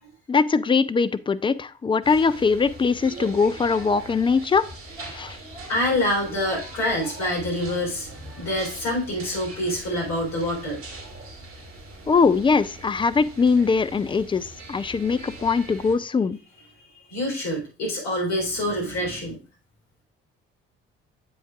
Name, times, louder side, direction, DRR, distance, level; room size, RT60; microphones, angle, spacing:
voice 1, 0.3-4.7 5.1-5.4 12.1-16.4, left 5 dB, 15° left, 13 dB, 0.5 m, -21 dB
sound 1, 2.0-16.0, right 2 dB, 45° right, 2.4 m, -41 dB
voice 2, 5.7-8.1 8.4-10.8 17.1-19.4, left 1 dB, 55° left, -2 dB, 3.9 m, -26 dB
7.8 x 7.7 x 2.5 m, 0.36 s
figure-of-eight pair, 50°, 31 cm